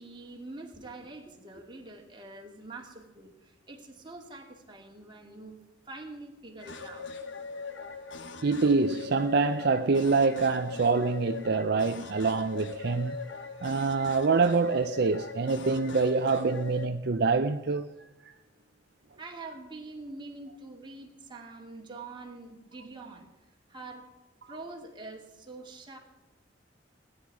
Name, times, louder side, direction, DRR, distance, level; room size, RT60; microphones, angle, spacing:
voice 1, 0.0-3.3 3.7-5.6 5.9-7.1 19.2-23.3 23.7-24.0 24.5-26.0, right 2 dB, 25° right, 2.4 m, -45 dB
sound 1, 6.6-16.9, left 4 dB, 75° left, 1.2 m, -41 dB
voice 2, 8.4-13.2 13.6-17.9 18.3-18.4, right 4 dB, 60° right, 0.6 m, -26 dB
18.0 x 10.5 x 4.8 m
head